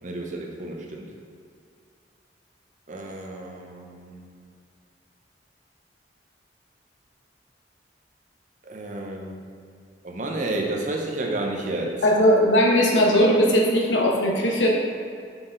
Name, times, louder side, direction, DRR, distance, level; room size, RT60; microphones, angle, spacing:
voice 1, 0.0-1.1 2.9-4.3 8.6-9.5 10.0-12.1, right 2 dB, 45° right, 1 dB, 0.8 m, -31 dB
voice 2, 12.0-14.7, equal, 90° left, -1 dB, 1.1 m, -19 dB
6.1 x 5.8 x 3.9 m, 2.4 s
head